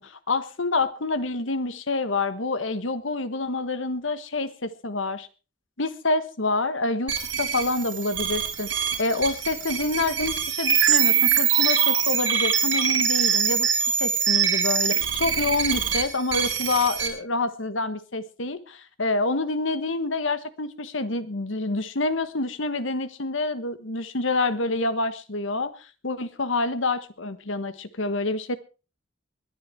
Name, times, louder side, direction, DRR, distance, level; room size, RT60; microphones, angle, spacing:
voice 1, 0.0-5.3 5.8-7.1 7.4-8.7 9.0-13.7 14.0-28.6, left 3 dB, 75° left, 13 dB, 1.4 m, -27 dB
sound 1, 7.1-17.1, right 8 dB, 65° right, 5.0 m, -23 dB
21.0 x 10.5 x 4.5 m, 0.34 s
head